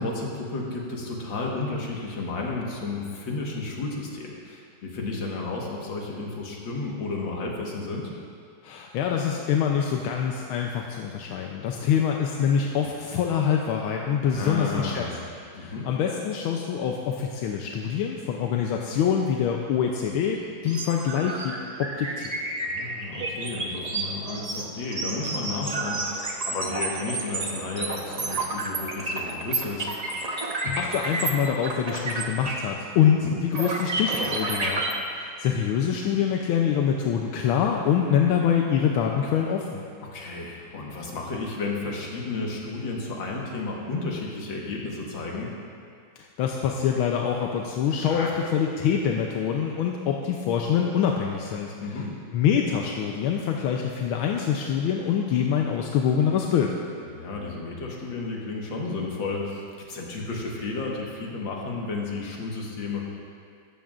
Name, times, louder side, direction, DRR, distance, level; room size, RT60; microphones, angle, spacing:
voice 1, 0.0-8.1 14.2-15.2 15.5-15.9 22.6-29.9 33.2-33.4 40.0-45.5 48.0-48.4 51.8-52.1 57.1-63.0, left 3 dB, 65° left, -2 dB, 2.2 m, -32 dB
voice 2, 8.6-15.1 15.5-21.5 21.8-22.4 30.6-34.8 35.1-39.8 46.4-51.7 52.3-56.7, left 8 dB, 85° left, 1 dB, 1.5 m, -25 dB
sound 1, 20.7-32.7 33.0-33.1 33.5-34.9, right 2 dB, 90° right, 0.3 m, -30 dB
15.0 x 12.5 x 2.5 m, 2.3 s
omnidirectional pair, 2.2 m